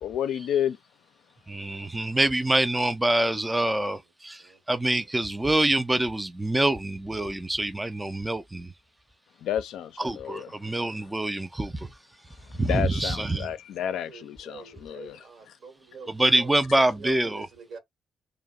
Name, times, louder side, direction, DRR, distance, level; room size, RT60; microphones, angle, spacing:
voice 1, 0.0-0.8 9.4-10.5 12.5-15.2, left 10 dB, 80° left, 0.4 m, -30 dB
voice 2, 1.5-8.7 10.0-11.9 12.6-13.5 16.1-17.5, right 1 dB, 10° right, 0.3 m, -25 dB
voice 3, 14.1-17.8, right 5 dB, 60° right, 1.0 m, -45 dB
2.7 x 2.1 x 2.3 m
cardioid pair, 90°, 0 cm